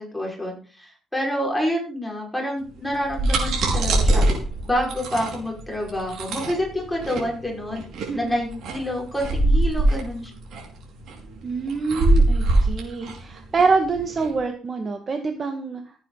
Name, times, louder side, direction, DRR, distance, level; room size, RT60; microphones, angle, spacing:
voice 1, 0.0-4.3 4.6-7.8 8.1-10.3, equal, 5° left, -1 dB, 5.3 m, -28 dB
sound 1, 2.9-14.3, right 2 dB, 75° right, 4.9 m, -22 dB
voice 2, 8.1-8.4 11.4-15.8, right 4 dB, 40° right, 5 dB, 1.9 m, -25 dB
16.5 x 9.1 x 4.0 m, 0.38 s
cardioid pair, 90°, 0 cm